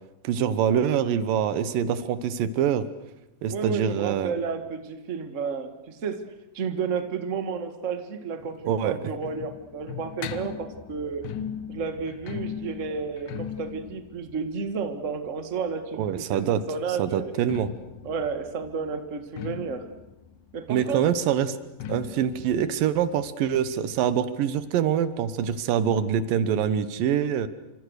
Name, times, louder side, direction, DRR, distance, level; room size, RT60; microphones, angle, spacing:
voice 1, 0.2-2.9 3.4-4.3 8.7-9.0 16.0-16.6 17.0-17.7 20.7-21.5 21.9-27.5, right 9 dB, 90° right, 13 dB, 2.9 m, -25 dB
voice 2, 3.5-6.2 6.5-11.3 11.7-16.4 16.7-17.3 18.0-19.8 20.5-21.0, right 5 dB, 30° right, 7 dB, 1.5 m, -31 dB
sound 1, 8.4-16.1 17.2-24.6 24.9-25.0 25.2-25.3 26.0-26.1, left 9 dB, 75° left, 2.6 m, -40 dB
28.0 x 26.0 x 6.5 m, 0.95 s
omnidirectional pair, 3.8 m